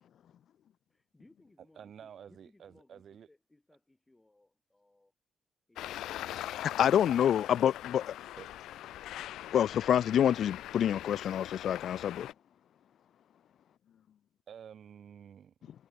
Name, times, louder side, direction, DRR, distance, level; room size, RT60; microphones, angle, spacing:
voice 1, 0.9-5.1, left 2 dB, 15° left, 5.8 m, -65 dB
voice 2, 1.7-3.3 8.3-8.5 14.5-15.7, right 8 dB, 60° right, 6.4 m, -50 dB
Traffic noise roadway noise, 5.8-12.3, left 13 dB, 85° left, 2.0 m, -41 dB
voice 3, 6.6-8.1 9.5-12.3, left 9 dB, 65° left, 0.4 m, -27 dB
cardioid pair, 90°, 0 cm